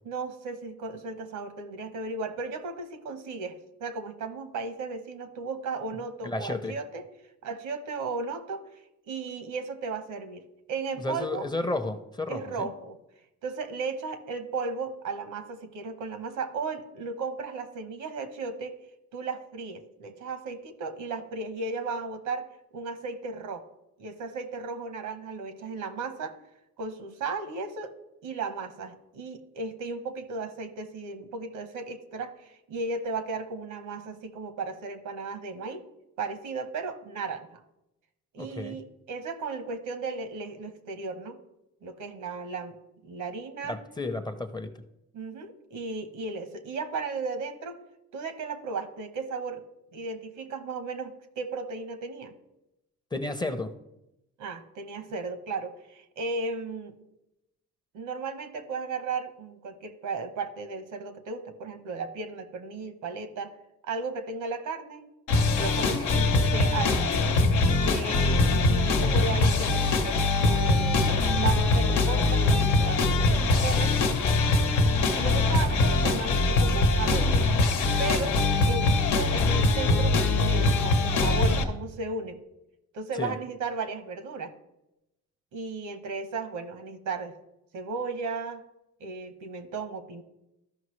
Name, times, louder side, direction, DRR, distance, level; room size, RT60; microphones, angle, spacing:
voice 1, 0.0-7.0 7.4-8.6 9.0-10.4 10.7-11.4 12.3-13.0 13.4-18.7 19.1-22.5 22.7-23.7 24.0-26.4 26.8-27.9 28.2-35.8 36.2-37.5 38.3-41.4 41.8-42.7 43.0-43.8 45.1-47.8 48.1-49.6 49.9-52.3 54.4-57.0 57.9-63.5 63.8-65.1 65.6-67.4 67.8-74.0 75.1-77.4 78.0-80.2 80.4-82.4 82.9-84.5 85.5-87.4 87.7-88.6 89.0-90.2, right 4 dB, 80° right, 10 dB, 1.0 m, -35 dB
voice 2, 6.2-6.8 11.0-12.7 38.4-38.8 43.6-44.7 53.1-53.7 83.2-83.4, left 2 dB, 15° left, 9 dB, 0.6 m, -32 dB
sound 1, 65.3-81.6, left 3 dB, 85° left, 1.0 m, -23 dB
13.0 x 5.4 x 3.2 m, 0.90 s
cardioid pair, 90°, 30 cm